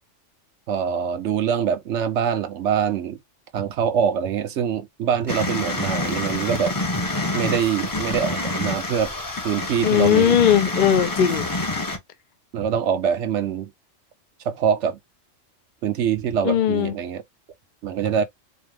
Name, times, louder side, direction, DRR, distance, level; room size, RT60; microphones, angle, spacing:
voice 1, 0.7-3.2 3.5-6.7 7.3-9.1 9.4-10.4 12.5-13.7 14.4-15.0 15.8-17.2 17.8-18.2, right 8 dB, 70° right, 1.0 m, -24 dB
sound 1, 5.3-12.0, left 2 dB, 20° left, 0.7 m, -27 dB
voice 2, 9.8-11.5 16.4-16.9, left 9 dB, 55° left, 0.5 m, -18 dB
4.4 x 2.1 x 3.3 m
omnidirectional pair, 1.3 m